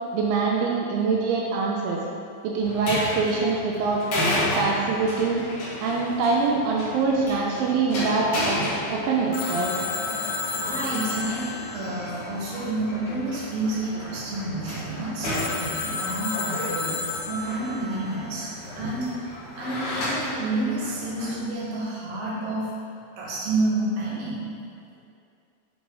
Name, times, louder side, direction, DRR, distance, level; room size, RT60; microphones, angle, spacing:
voice 1, 0.1-2.0 2.4-4.0 4.6-5.4 5.8-8.6 8.9-9.7, right 4 dB, 85° right, -2 dB, 2.3 m, -24 dB
sound 1, 2.6-21.4, left 1 dB, 55° left, 1.8 m, -33 dB
Telephone, 9.3-13.0 15.3-17.9, left 4 dB, 85° left, 1.8 m, -32 dB
voice 2, 10.5-19.3 19.5-24.5, right 2 dB, 55° right, -7 dB, 2.2 m, -30 dB
7.9 x 3.0 x 4.6 m, 2.4 s
omnidirectional pair, 4.1 m